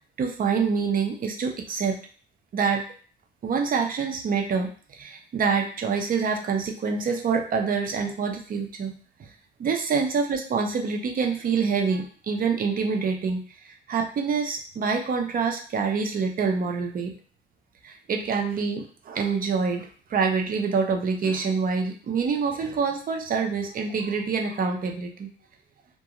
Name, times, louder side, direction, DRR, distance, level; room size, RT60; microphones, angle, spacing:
voice 1, 0.2-2.0 2.5-2.8 3.4-8.9 9.2-9.3 9.6-17.1 17.8-25.3, right 5 dB, 45° right, 3 dB, 0.6 m, -26 dB
2.4 x 2.2 x 2.9 m, 0.40 s
cardioid pair, 90°, 20 cm